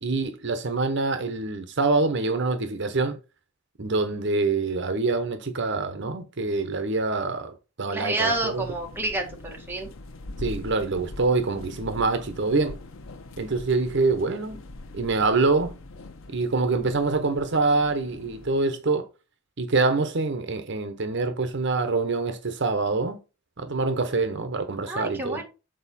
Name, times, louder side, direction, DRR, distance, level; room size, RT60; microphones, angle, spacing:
voice 1, 0.0-3.2 3.8-8.6 10.4-12.8 13.4-14.6 14.9-15.7 16.3-19.1 19.6-23.2 23.6-25.5, right 3 dB, 60° right, 0.9 m, -25 dB
voice 2, 7.9-9.9 24.9-25.5, right 2 dB, 10° right, 1.6 m, -29 dB
sound 1, 8.2-18.6, left 2 dB, 85° left, 0.7 m, -42 dB
7.8 x 4.4 x 4.2 m
head